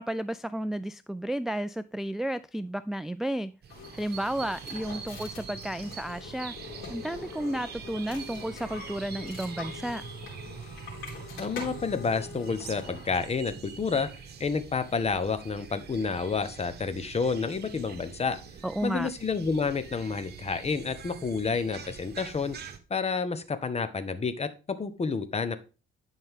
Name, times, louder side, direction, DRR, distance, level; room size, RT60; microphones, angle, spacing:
voice 1, 0.0-3.5 3.9-6.5 6.9-10.0 18.6-19.1, right 1 dB, ahead, 14 dB, 0.3 m, -32 dB
sound 1, 3.6-22.8, right 6 dB, 55° right, 1.4 m, -44 dB
sound 2, 3.7-13.1, left 5 dB, 80° left, 3.8 m, -44 dB
voice 2, 11.4-14.1 14.4-18.4 18.8-22.6 22.9-25.6, left 5 dB, 30° left, 11 dB, 1.2 m, -29 dB
11.0 x 5.5 x 3.7 m, 0.31 s
cardioid pair, 90°, 20 cm